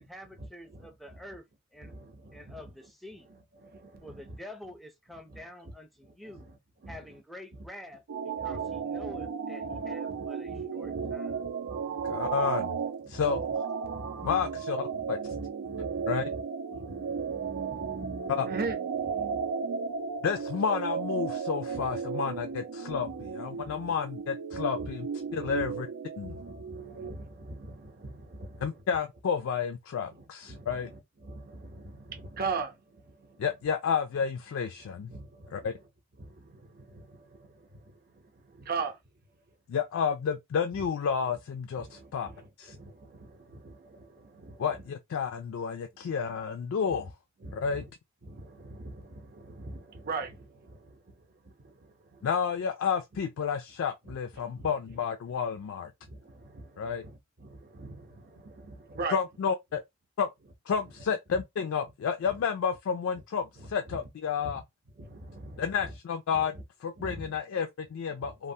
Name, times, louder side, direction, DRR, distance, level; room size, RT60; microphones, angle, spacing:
voice 1, 0.0-1.4 1.7-1.9 2.3-3.3 4.0-6.5 6.9-8.0 8.4-11.4, left 1 dB, ahead, 0.4 m, -47 dB
voice 2, 1.8-2.6 3.6-4.4 5.3-5.7 6.0-6.6 6.8-7.0 8.4-8.8 9.1-9.3 9.6-12.3 13.0-13.4 13.8-14.5 15.3-16.4 16.7-19.5 21.7-21.9 23.5-23.9 24.5-24.9 25.3-25.5 26.2-28.7 30.5-33.4 35.1-35.7 36.2-39.0 41.8-44.6 46.9-47.0 47.4-47.7 48.2-51.0 51.4-52.3 54.1-54.7 56.1-57.1 57.4-59.2 64.4-64.6 65.0-65.7 67.0-67.4 68.2-68.3, right 4 dB, 45° right, 0.6 m, -42 dB
sound 1, 8.1-27.1, right 6 dB, 85° right, 0.5 m, -35 dB
voice 3, 12.0-12.7 13.1-13.4 14.2-15.2 16.1-16.3 18.3-18.5 20.2-25.9 26.2-26.3 28.6-30.9 33.4-35.1 35.5-35.7 39.7-42.3 42.6-42.8 44.6-47.1 47.5-47.9 52.2-55.9 56.8-57.0 59.1-59.8 60.2-60.3 60.7-64.6 65.6-66.6 66.8-68.5, left 6 dB, 70° left, 0.3 m, -31 dB
3.2 x 2.0 x 2.6 m
head